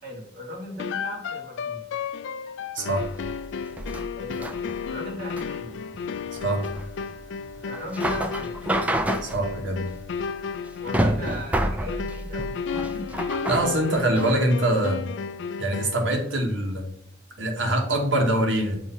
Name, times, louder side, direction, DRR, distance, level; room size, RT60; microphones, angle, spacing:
voice 1, 0.0-1.8 4.2-4.6 4.9-5.8 7.6-8.6 10.8-13.1, equal, 50° right, -1 dB, 1.6 m, -38 dB
sound 1, 0.8-16.1, left 5 dB, 70° left, 0.3 m, -33 dB
voice 2, 2.7-3.1 6.3-6.7 9.2-9.8 13.5-15.0 15.6-16.8 17.4-18.8, right 1 dB, 75° right, 2 dB, 1.3 m, -24 dB
sound 2, 2.9-14.5, right 1 dB, 5° right, 0.3 m, -30 dB
6.3 x 2.7 x 5.6 m, 0.73 s
head